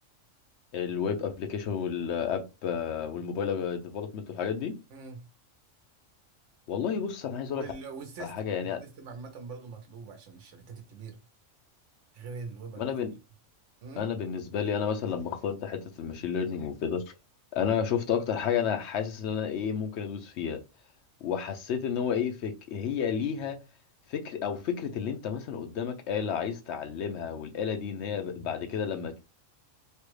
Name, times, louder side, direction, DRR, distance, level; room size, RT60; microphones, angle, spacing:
voice 1, 0.7-4.8 6.7-7.6 8.2-8.8 12.8-13.1 14.0-17.1 17.5-20.6 21.2-23.6 24.1-29.2, left 7 dB, 65° left, 0.8 m, -31 dB
voice 2, 4.9-5.3 7.5-11.2 12.1-12.9 13.8-14.1, right 4 dB, 65° right, 1.2 m, -43 dB
3.3 x 2.3 x 3.1 m
omnidirectional pair, 1.4 m